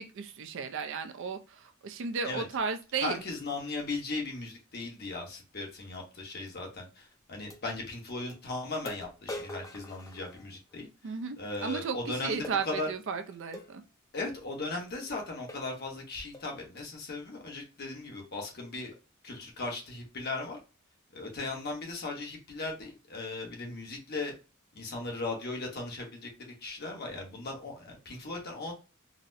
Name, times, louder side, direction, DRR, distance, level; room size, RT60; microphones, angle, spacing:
voice 1, 0.0-3.2 11.0-13.8, right 5 dB, 60° right, 8 dB, 0.4 m, -34 dB
voice 2, 3.0-12.9 14.1-18.9 19.2-20.6 21.1-24.3 24.7-26.3 26.6-28.7, left 2 dB, 50° left, 1 dB, 0.9 m, -37 dB
sound 1, 6.5-6.6 7.5-7.6 8.3-8.4 8.9-10.8 12.4-12.7 13.5-13.7 14.5-14.7 15.1-15.2 15.5-15.8 16.3-16.6, left 1 dB, 15° left, 0.5 m, -44 dB
4.0 x 2.0 x 2.5 m, 0.31 s
head